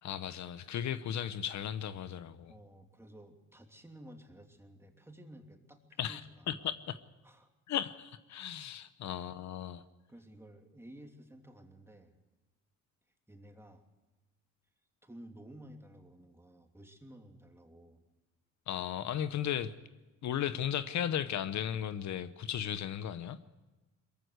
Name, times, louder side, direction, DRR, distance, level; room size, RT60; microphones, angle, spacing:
voice 1, 0.0-2.5 6.0-6.2 6.5-7.0 7.7-9.8 18.7-19.7 20.2-23.4, left 10 dB, 65° left, 12 dB, 0.9 m, -35 dB
voice 2, 2.5-6.8 7.2-7.5 9.2-9.3 10.1-12.1 13.3-13.9 15.0-18.0, right 1 dB, 10° right, 3 dB, 2.9 m, -54 dB
22.5 x 15.0 x 8.0 m, 1.1 s
cardioid pair, 90°, 30 cm